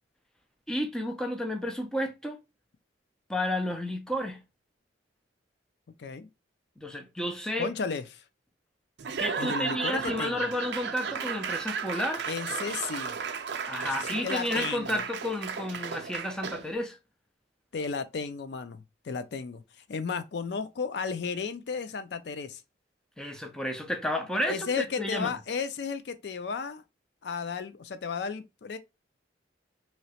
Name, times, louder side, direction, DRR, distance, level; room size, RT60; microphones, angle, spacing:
voice 1, 0.7-2.4 3.3-4.4 6.8-7.7 9.2-12.2 13.7-17.0 23.2-25.3, left 1 dB, 5° left, 0.5 m, -31 dB
voice 2, 7.6-8.0 9.4-10.5 12.3-13.1 14.0-15.0 17.7-22.6 24.5-26.8 27.2-28.8, left 5 dB, 60° left, 0.4 m, -34 dB
Laughter / Applause / Crowd, 9.0-16.8, right 6 dB, 65° right, 0.4 m, -34 dB
3.1 x 2.9 x 2.8 m
head